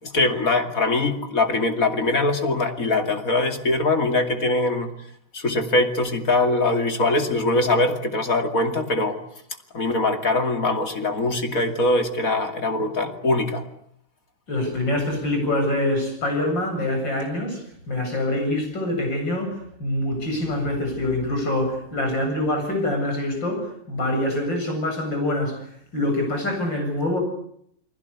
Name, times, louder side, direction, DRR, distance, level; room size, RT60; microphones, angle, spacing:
voice 1, 0.0-4.9 5.3-9.2 9.7-13.6, left 2 dB, 45° left, 6 dB, 2.8 m, -22 dB
voice 2, 14.5-17.6 17.9-25.6 25.9-27.2, left 1 dB, 65° left, 4 dB, 8.6 m, -25 dB
29.0 x 20.5 x 8.4 m, 0.69 s
omnidirectional pair, 2.2 m